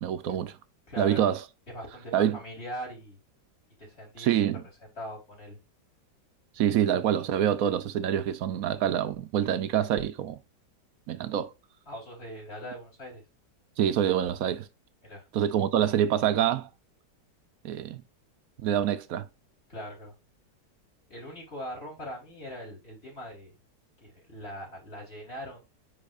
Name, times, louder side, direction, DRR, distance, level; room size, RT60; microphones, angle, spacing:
voice 1, 0.0-0.6 1.0-1.4 2.1-2.4 4.2-4.6 6.6-10.4 11.1-11.5 13.8-14.7 15.3-16.7 17.6-18.0 18.6-19.2, right 10 dB, 70° right, 0.9 m, -26 dB
voice 2, 0.9-1.2 1.7-3.2 3.8-4.3 4.8-5.6 11.9-13.3 15.0-15.2 19.7-20.1 21.1-23.5 24.0-25.6, equal, 35° left, 4.4 m, -41 dB
10.0 x 4.0 x 2.5 m
omnidirectional pair, 1.9 m